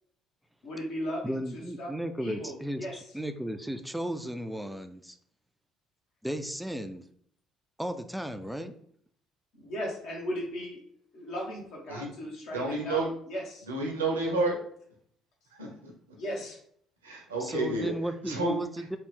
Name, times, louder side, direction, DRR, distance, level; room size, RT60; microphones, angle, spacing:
voice 1, 0.6-1.9 2.2-3.0 9.5-10.8 11.1-13.7 16.1-16.6, equal, 60° left, -1 dB, 1.1 m, -37 dB
voice 2, 1.2-2.9 3.1-5.2 6.2-7.1 7.8-8.7 17.4-19.0, right 1 dB, 5° right, 8 dB, 0.3 m, -34 dB
voice 3, 12.5-13.1 13.7-14.6 15.6-15.9 17.0-17.9 18.2-18.6, right 2 dB, 85° right, 0 dB, 0.7 m, -30 dB
3.2 x 2.4 x 3.3 m, 0.64 s
figure-of-eight pair, 50°, 0 cm